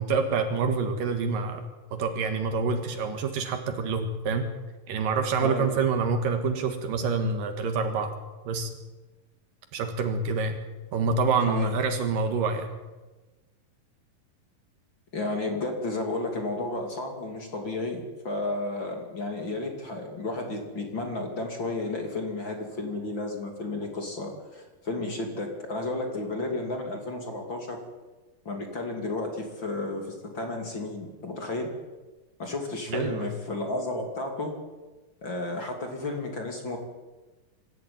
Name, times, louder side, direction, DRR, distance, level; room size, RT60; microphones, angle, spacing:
voice 1, 0.0-1.6 1.9-4.4 4.9-8.1 8.5-8.7 9.7-10.6 10.9-12.7 32.9-33.3, right 4 dB, 75° right, 6 dB, 3.2 m, -27 dB
voice 2, 15.1-27.8 28.4-31.7 32.4-34.5 35.2-36.8, left 2 dB, 35° left, 3 dB, 3.1 m, -32 dB
25.5 x 14.0 x 9.5 m, 1.2 s
omnidirectional pair, 3.9 m